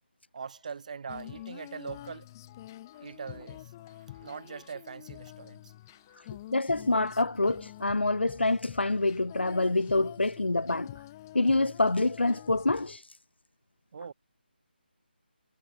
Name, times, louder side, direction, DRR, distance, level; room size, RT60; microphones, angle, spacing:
voice 1, 0.3-2.3 2.9-5.6 5.9-6.3 13.9-14.1, right 6 dB, 40° right, 1.9 m, -42 dB
Female singing, 1.1-13.0, left 15 dB, 20° left, 0.8 m, -47 dB
voice 2, 6.5-10.9 11.3-13.2, left 2 dB, 85° left, 0.6 m, -26 dB
figure-of-eight pair, 155°, 6 cm